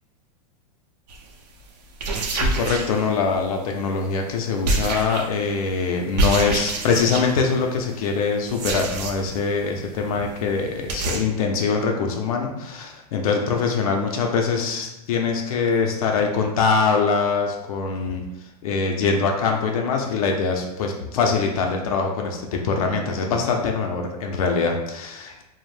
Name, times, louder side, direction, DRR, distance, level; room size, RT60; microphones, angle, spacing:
sound 1, 1.1-1.3 1.9-3.4 4.6-5.5 6.2-7.5 8.5-9.4 9.7-9.8 10.1-10.2 10.4-10.5 10.9-11.2, right 2 dB, 85° right, 0.6 m, -26 dB
voice 1, 2.3-18.2 18.6-25.5, left 5 dB, 60° left, 2 dB, 0.4 m, -23 dB
2.5 x 2.0 x 3.2 m, 0.97 s
supercardioid pair, 165°, 20 cm